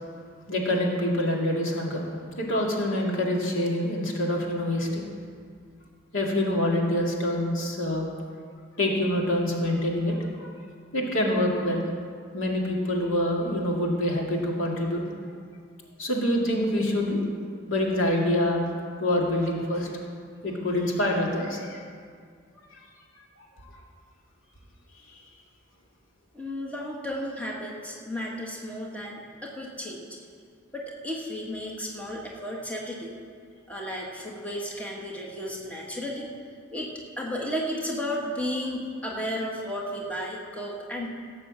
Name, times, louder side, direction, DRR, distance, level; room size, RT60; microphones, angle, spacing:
voice 1, 0.5-2.1 2.4-5.0 6.1-8.0 8.8-10.5 10.9-11.8 12.3-15.0 16.0-17.2 17.7-18.6 19.0-19.9 20.4-21.8 22.7-22.8 23.4-23.5, left 1 dB, 80° left, -1 dB, 2.2 m, -26 dB
voice 2, 26.3-30.1 30.7-33.2 33.7-36.3 36.7-41.1, equal, 5° left, -2 dB, 1.6 m, -33 dB
16.5 x 6.3 x 7.5 m, 2.1 s
head